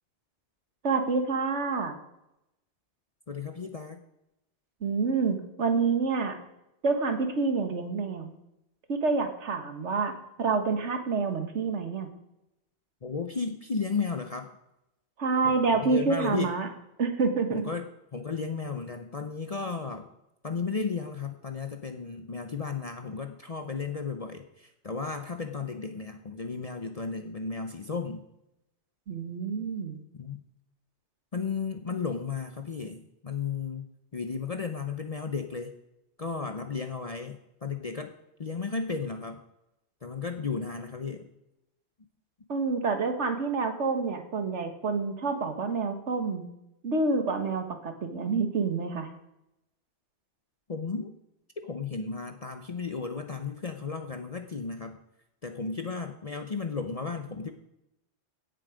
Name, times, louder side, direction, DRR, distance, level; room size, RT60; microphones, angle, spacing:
voice 1, 0.8-2.0 4.8-6.4 6.8-8.4 8.9-10.1 10.4-12.1 15.2-16.7 17.0-17.7 29.1-30.0 42.5-46.4 46.8-49.1, right 4 dB, 90° right, 7 dB, 1.7 m, -28 dB
voice 2, 3.3-4.0 13.0-14.5 15.4-16.5 17.5-20.1 20.4-28.2 30.1-30.4 31.3-35.7 36.2-38.1 38.4-39.4 40.0-41.3 50.7-51.1 51.6-55.0 55.4-57.5, left 5 dB, 40° left, 6 dB, 0.8 m, -34 dB
16.5 x 7.6 x 5.0 m, 0.87 s
omnidirectional pair, 1.2 m